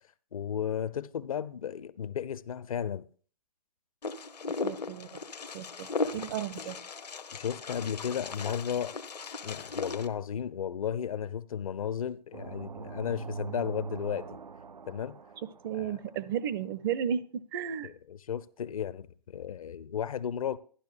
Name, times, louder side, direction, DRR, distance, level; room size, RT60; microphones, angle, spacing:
voice 1, 0.3-3.1 6.0-6.2 7.3-8.9 9.4-14.4 14.9-15.2 15.7-16.0 17.8-20.6, left 8 dB, 55° left, 0.5 m, -34 dB
Wind, 4.0-10.1, left 4 dB, 75° left, 0.9 m, -37 dB
voice 2, 4.6-5.2 5.5-6.8 15.4-17.9, right 8 dB, 35° right, 0.5 m, -34 dB
sound 1, 12.3-16.1, right 5 dB, 85° right, 0.4 m, -42 dB
11.5 x 11.5 x 2.5 m
figure-of-eight pair, 125°, 21 cm